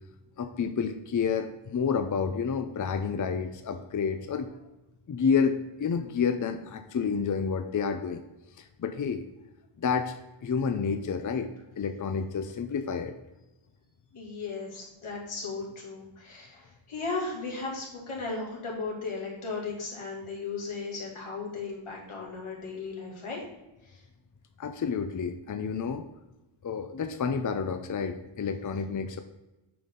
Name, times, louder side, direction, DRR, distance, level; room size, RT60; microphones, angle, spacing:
voice 1, 0.4-4.5 5.1-8.2 8.6-9.2 9.8-10.1 10.4-11.5 11.8-13.1 24.6-26.0 26.6-29.2, left 6 dB, 40° left, 8 dB, 0.6 m, -29 dB
voice 2, 14.1-23.4 23.9-24.0, left 4 dB, 85° left, -2 dB, 2.5 m, -36 dB
7.8 x 5.3 x 3.8 m, 0.99 s
wide cardioid pair, 90°, 49 cm